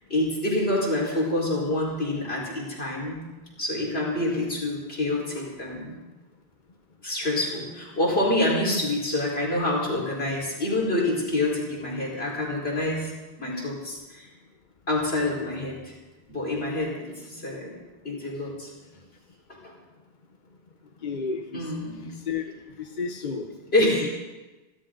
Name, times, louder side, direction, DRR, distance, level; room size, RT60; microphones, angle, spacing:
voice 1, 0.1-3.2 3.6-5.9 7.0-13.1 13.4-14.3 14.9-15.9 16.3-17.7 18.0-18.7 19.6-19.7 21.5-22.1 23.7-24.1, left 1 dB, 70° left, -3 dB, 4.9 m, -27 dB
voice 2, 21.0-21.7 22.0-22.4 22.8-23.5 23.8-24.1, left 5 dB, 50° left, 4 dB, 1.1 m, -32 dB
27.5 x 12.5 x 3.9 m, 1.2 s
omnidirectional pair, 1.1 m